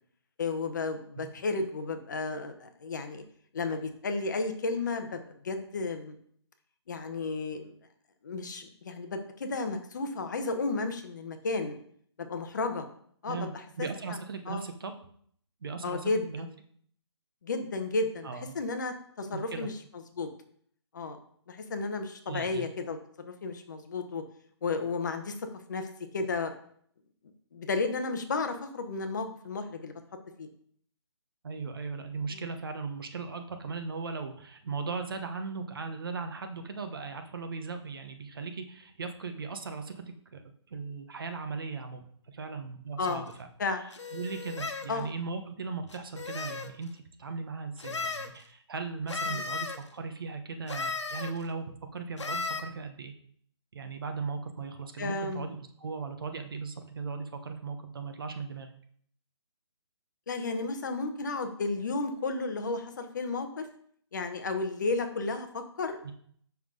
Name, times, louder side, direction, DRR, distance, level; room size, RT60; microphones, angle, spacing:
voice 1, 0.4-3.2 3.5-6.1 6.9-7.7 8.2-11.8 12.2-12.9 13.2-13.5 13.8-13.9 14.5-14.6 15.8-16.5 17.4-19.7 20.1-20.3 20.9-21.2 21.5-23.0 23.3-24.2 24.6-25.3 25.7-25.9 26.1-26.5 27.5-29.9 30.4-30.5 32.3-32.4 43.0-43.3 43.6-43.8 44.9-45.1 49.3-49.5 55.0-55.5 60.3-63.7 64.1-66.1, left 3 dB, 40° left, 6 dB, 0.9 m, -33 dB
voice 2, 13.3-14.9 15.6-16.5 18.2-18.5 19.3-19.7 22.3-22.7 31.4-40.4 40.7-42.0 42.3-43.3 44.1-53.1 53.7-58.7 66.0-66.1, right 4 dB, 50° right, 6 dB, 1.0 m, -38 dB
sound 1, 43.0-43.2 43.9-44.9 45.9-46.7 47.8-48.3 49.1-49.8 50.7-51.3 52.2-52.6, left 4 dB, 80° left, 1.1 m, -35 dB
7.1 x 5.8 x 3.8 m, 0.62 s
hypercardioid pair, 170°, 15 cm